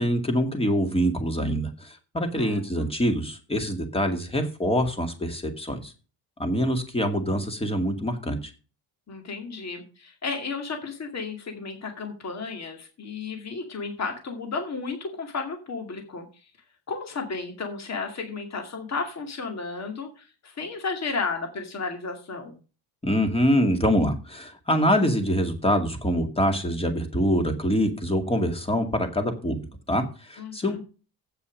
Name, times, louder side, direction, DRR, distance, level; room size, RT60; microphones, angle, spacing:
voice 1, 0.0-5.9 6.4-8.5 23.0-30.8, equal, 15° left, 5 dB, 2.2 m, -25 dB
voice 2, 2.4-2.9 9.1-16.5 16.9-22.6 30.4-30.8, left 4 dB, 40° left, 4 dB, 2.3 m, -33 dB
8.6 x 7.0 x 6.4 m, 0.34 s
cardioid pair, 110°, 43 cm